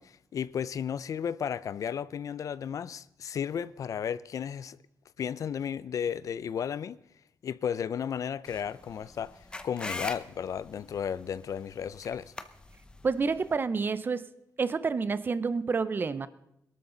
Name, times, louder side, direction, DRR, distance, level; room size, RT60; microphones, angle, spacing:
voice 1, 0.0-4.8 5.2-7.0 7.4-12.3, left 8 dB, 55° left, 0.4 m, -34 dB
sound 1, 8.5-13.6, left 2 dB, 15° left, 0.7 m, -42 dB
voice 2, 13.0-14.3 14.6-16.3, right 4 dB, 30° right, 0.7 m, -28 dB
22.0 x 12.5 x 3.9 m
wide cardioid pair, 170°, 7 cm